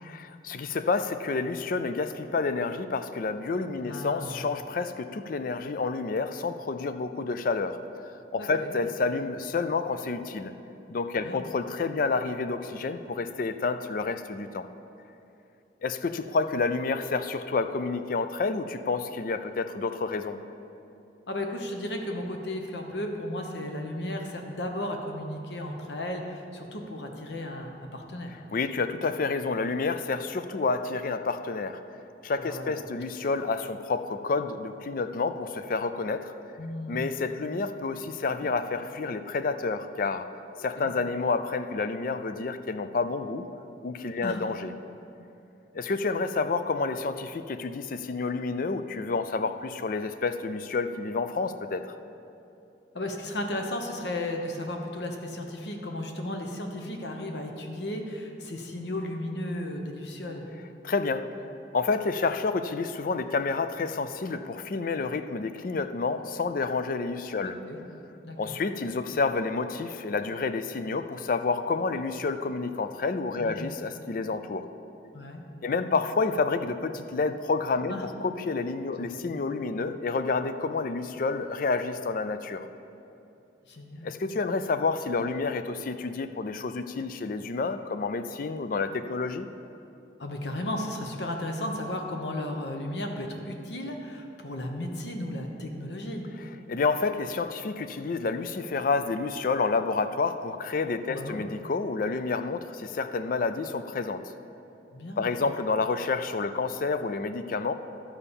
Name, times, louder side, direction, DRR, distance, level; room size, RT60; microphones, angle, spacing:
voice 1, 0.1-7.8 8.3-10.5 10.9-14.7 15.8-20.4 28.5-31.8 32.2-36.3 36.9-40.3 40.6-43.5 43.8-44.7 45.7-51.9 60.8-61.3 61.7-67.6 68.4-74.7 75.6-77.9 78.2-82.7 84.0-89.5 96.7-104.2 105.2-107.7, left 4 dB, 50° left, 10 dB, 0.4 m, -29 dB
voice 2, 3.8-4.4 8.4-8.7 11.2-11.4 21.3-28.4 32.4-32.8 36.6-37.0 38.4-38.6 40.8-40.9 44.2-44.4 52.9-60.5 67.4-67.8 68.2-68.6 73.4-73.7 75.1-75.4 75.7-76.0 77.9-78.1 83.7-84.2 90.2-96.2 101.1-101.4 104.9-105.3, left 1 dB, 75° left, 3 dB, 1.1 m, -35 dB
11.5 x 5.6 x 7.0 m, 2.7 s
head